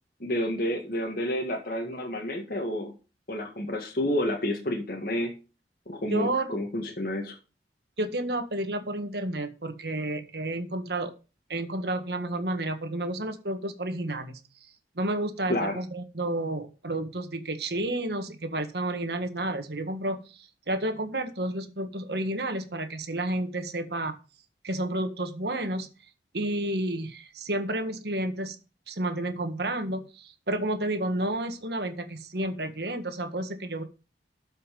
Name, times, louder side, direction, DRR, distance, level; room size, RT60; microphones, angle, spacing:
voice 1, 0.2-2.9 3.3-5.3 5.9-7.4 15.5-15.8, left 1 dB, 55° left, 1 dB, 2.0 m, -30 dB
voice 2, 6.1-6.5 8.0-11.1 11.5-14.4 14.9-24.2 24.6-25.9 26.3-28.6 28.9-33.8, right 1 dB, 70° right, 8 dB, 1.6 m, -31 dB
12.5 x 5.6 x 5.4 m, 0.32 s
head